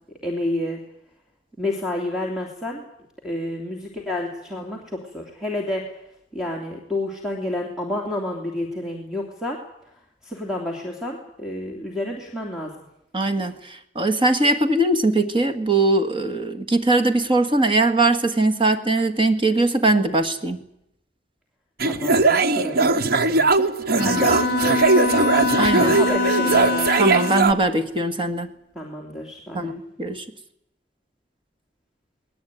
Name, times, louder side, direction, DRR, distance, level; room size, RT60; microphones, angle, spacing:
voice 1, 0.2-0.8 1.6-2.9 3.2-5.8 6.3-9.6 10.2-12.7 21.8-25.3 25.8-27.0 28.7-29.7, left 1 dB, 5° right, 0 dB, 3.0 m, -30 dB
voice 2, 13.1-20.6 24.0-24.2 25.6-26.0 27.0-28.5 29.5-30.3, right 2 dB, 25° right, 8 dB, 1.8 m, -21 dB
sound 1, 21.8-27.5, right 3 dB, 55° right, 0.9 m, -20 dB
Bowed string instrument, 24.0-27.6, left 3 dB, 50° left, 1.4 m, -24 dB
19.5 x 19.0 x 9.3 m, 0.78 s
head